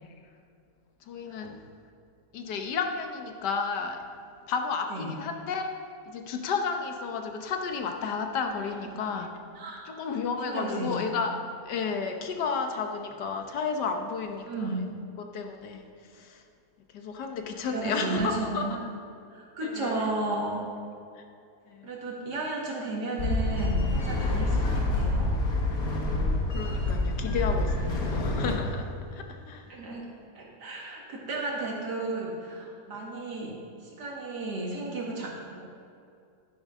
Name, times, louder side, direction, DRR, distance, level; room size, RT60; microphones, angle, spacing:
voice 1, 1.0-1.6 2.3-4.0 4.5-5.8 6.1-9.3 9.8-14.8 15.2-16.4 16.9-18.7 19.6-20.2 21.2-21.3 21.7-21.9 26.5-29.8, left 5 dB, 90° left, 4 dB, 1.5 m, -32 dB
voice 2, 9.6-9.9 10.4-11.2 14.4-14.9 17.6-18.8 19.3-20.7 21.8-25.3 29.7-30.1 30.3-35.7, right 2 dB, 80° right, -2 dB, 2.3 m, -34 dB
sound 1, 23.2-28.5, left 2 dB, 60° left, 1.8 m, -27 dB
11.5 x 10.0 x 3.7 m, 2.5 s
omnidirectional pair, 1.8 m